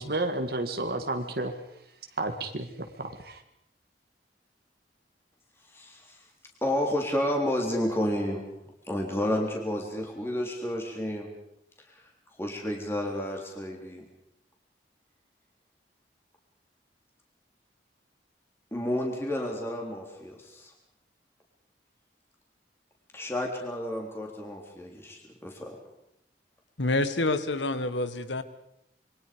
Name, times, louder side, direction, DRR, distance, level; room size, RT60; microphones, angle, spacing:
voice 1, 0.0-1.5 2.2-2.7 3.0-3.4, right 2 dB, 55° right, 5 dB, 1.9 m, -31 dB
voice 2, 6.6-8.5 8.9-11.3 12.4-14.0 18.7-20.7 23.1-25.7, left 1 dB, 15° left, 0 dB, 3.5 m, -31 dB
voice 3, 26.8-28.4, left 2 dB, 85° left, 12 dB, 1.7 m, -27 dB
27.0 x 23.5 x 5.2 m, 0.78 s
head